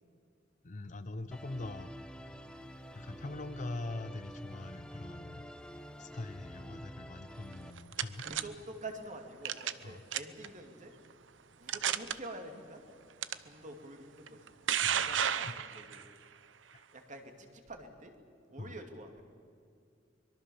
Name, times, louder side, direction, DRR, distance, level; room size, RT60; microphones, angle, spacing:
voice 1, 0.6-1.9 2.9-5.5 6.0-8.3 9.8-10.0 14.8-15.6 15.9-16.0 16.7-16.8 18.6-18.8, left 2 dB, 40° left, 10 dB, 0.7 m, -43 dB
Musical instrument, 1.3-7.7, equal, 5° left, 1.0 m, -48 dB
sound 1, 7.5-8.4 9.5-9.8 10.1-10.5 11.1-11.2 11.7-12.1 13.2-13.3 14.3-16.0, right 9 dB, 75° right, 0.8 m, -32 dB
voice 2, 8.1-10.9 11.6-12.8 13.4-14.4 14.9-16.0 16.9-18.1 18.5-19.2, right 1 dB, 40° right, 5 dB, 2.6 m, -47 dB
24.0 x 22.5 x 7.2 m, 2.3 s
head